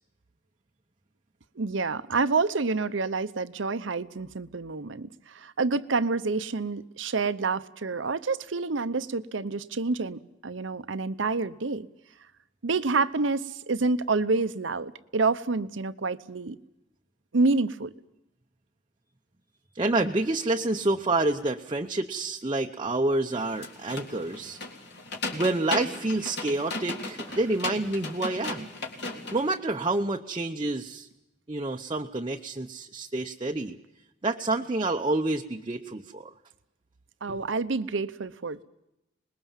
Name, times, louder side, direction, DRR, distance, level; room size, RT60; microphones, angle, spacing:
voice 1, 1.6-11.9 12.6-16.6 17.3-17.9 37.2-38.6, right 3 dB, 70° right, 0.8 m, -28 dB
voice 2, 19.7-24.6 25.3-28.7 29.3-31.1 31.5-33.8 34.2-36.3 37.3-37.4, right 2 dB, 25° right, 0.8 m, -28 dB
sound 1, 23.3-29.5, left 3 dB, 60° left, 3.5 m, -36 dB
25.5 x 21.0 x 7.4 m
head